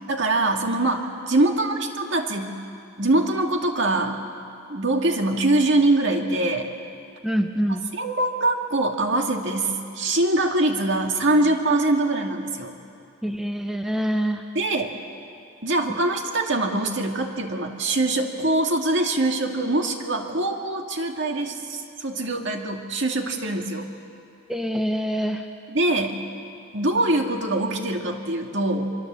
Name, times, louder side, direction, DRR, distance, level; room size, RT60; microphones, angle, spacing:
voice 1, 0.1-2.6 3.0-4.2 4.7-6.7 7.9-12.8 14.5-14.9 15.6-23.9 25.7-26.2 26.7-29.0, right 2 dB, 55° right, 3 dB, 2.1 m, -23 dB
voice 2, 7.2-7.9 13.2-14.4 24.5-25.5, equal, ahead, 4 dB, 0.8 m, -25 dB
25.0 x 24.5 x 7.6 m, 2.5 s
head